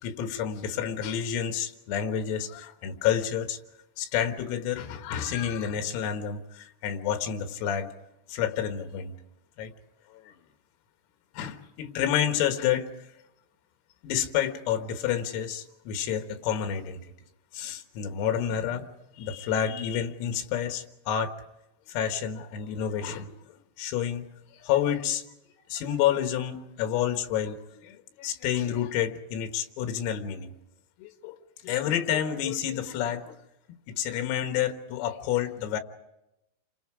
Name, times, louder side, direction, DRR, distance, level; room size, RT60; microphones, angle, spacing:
voice 1, 0.0-3.6 4.0-7.9 8.3-9.1 9.6-9.7 10.1-10.4 11.4-12.9 14.0-17.0 17.5-18.9 19.2-21.3 21.9-23.4 23.8-24.2 24.6-25.2 25.7-30.5 31.0-31.4 31.6-33.4 33.9-35.8, left 9 dB, 90° left, 7 dB, 4.2 m, -29 dB
29.0 x 25.5 x 4.8 m, 0.89 s
omnidirectional pair, 5.9 m